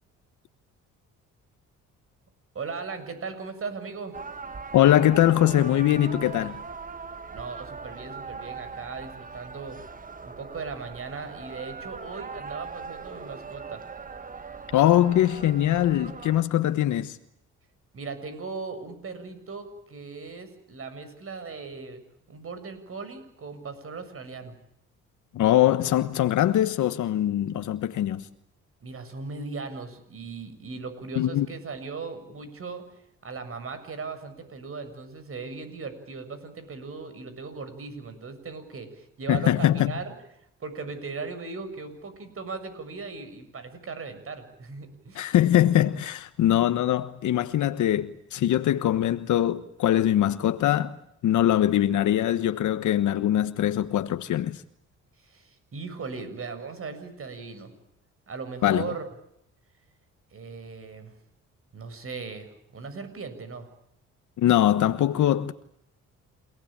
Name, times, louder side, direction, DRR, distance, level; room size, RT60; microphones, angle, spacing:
voice 1, 2.5-4.2 7.3-9.8 10.2-13.8 17.9-22.0 22.3-24.5 28.8-32.8 33.2-40.1 40.6-45.3 55.2-57.7 58.3-59.0 60.3-61.1 61.7-63.7, right 4 dB, 45° right, 7.2 m, -38 dB
sound 1, 4.1-16.4, right 5 dB, 25° right, 1.6 m, -40 dB
voice 2, 4.7-6.6 14.7-17.2 25.3-28.3 31.2-31.5 39.3-39.9 45.1-50.9 51.2-54.6 58.6-58.9 64.4-65.5, left 12 dB, 75° left, 1.3 m, -22 dB
29.0 x 19.0 x 8.9 m
cardioid pair, 90°, 30 cm